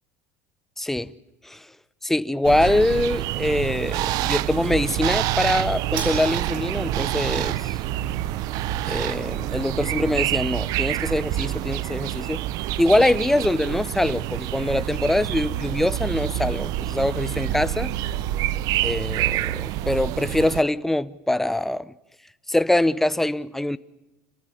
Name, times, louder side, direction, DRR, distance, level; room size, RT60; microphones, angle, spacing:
voice 1, 0.8-1.1 1.4-1.7 2.0-7.8 8.8-12.4 12.8-17.9 18.8-21.9 22.5-23.8, left 1 dB, 5° left, 0.8 m, -23 dB
sound 1, 2.4-20.6, right 14 dB, 60° right, 0.8 m, -27 dB
sound 2, 6.0-12.5, right 5 dB, 80° right, 7.0 m, -45 dB
27.0 x 15.0 x 9.8 m
supercardioid pair, 115°, 7 cm